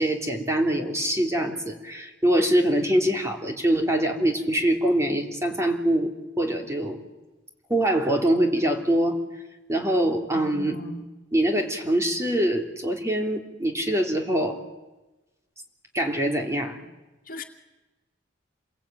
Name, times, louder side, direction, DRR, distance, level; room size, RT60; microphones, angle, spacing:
voice 1, 0.0-7.0 7.7-9.2 9.7-10.8 11.3-14.6 15.9-16.8, right 1 dB, 15° right, 3 dB, 3.1 m, -24 dB
voice 2, 10.3-11.0 17.3-17.4, left 2 dB, 50° left, 4 dB, 2.2 m, -37 dB
28.0 x 22.5 x 9.1 m, 1.1 s
head